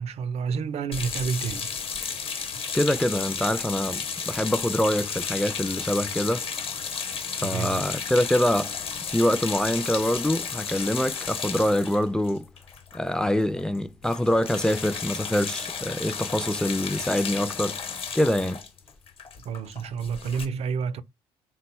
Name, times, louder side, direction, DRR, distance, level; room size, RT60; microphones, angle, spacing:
voice 1, 0.0-1.7 7.4-7.8 19.4-21.0, right 6 dB, 60° right, 0.5 m, -29 dB
sound 1, 0.9-13.3 13.6-13.8 14.0-20.5, left 6 dB, 50° left, 1.0 m, -33 dB
voice 2, 2.7-6.5 7.4-8.8 9.1-12.4 12.9-17.8 18.1-18.6, left 1 dB, 5° left, 0.4 m, -25 dB
3.9 x 2.2 x 4.1 m
supercardioid pair, 65°, 12 cm